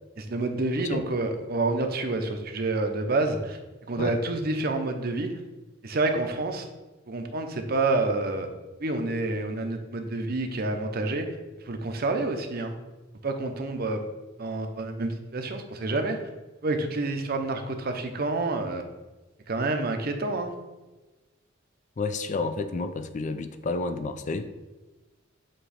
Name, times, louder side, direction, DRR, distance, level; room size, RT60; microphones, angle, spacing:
voice 1, 0.2-3.6 3.9-5.3 5.8-6.7 7.1-8.5 8.8-11.3 11.7-12.7 13.2-14.0 14.4-16.2 16.6-18.9 19.5-20.5, right 2 dB, 50° right, 6 dB, 0.7 m, -28 dB
voice 2, 22.0-24.5, left 3 dB, 35° left, 9 dB, 0.4 m, -30 dB
7.8 x 3.0 x 4.9 m, 1.2 s
head